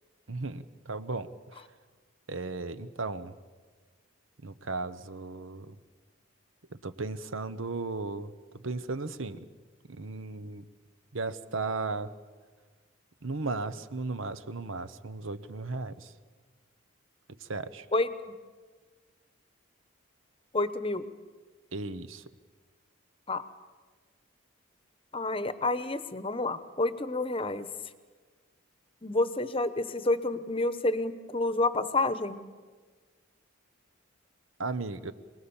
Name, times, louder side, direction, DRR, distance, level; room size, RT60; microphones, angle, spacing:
voice 1, 0.3-1.6 2.3-3.3 4.4-5.7 6.8-8.3 8.6-9.5 9.9-10.6 11.1-12.1 13.2-16.1 17.4-17.9 21.7-22.2 34.6-35.1, right 3 dB, 70° right, 13 dB, 1.1 m, -35 dB
voice 2, 20.5-21.0 23.3-23.4 25.1-27.7 29.0-32.4, left 2 dB, 25° left, 12 dB, 1.0 m, -29 dB
26.5 x 19.5 x 7.2 m, 1.4 s
head